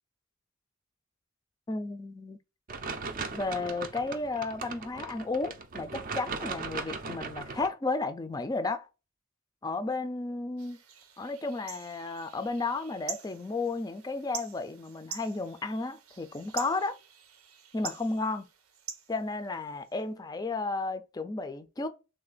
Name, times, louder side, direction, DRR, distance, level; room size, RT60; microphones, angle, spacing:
voice 1, 1.7-2.4 3.3-8.9 9.6-10.8 11.2-17.0 17.7-18.5 19.1-21.9, left 3 dB, 20° left, 0.4 m, -33 dB
sound 1, 2.7-7.7, right 4 dB, 40° right, 0.5 m, -38 dB
sound 2, 10.6-20.0, right 7 dB, 90° right, 0.7 m, -45 dB
3.3 x 3.3 x 3.8 m
head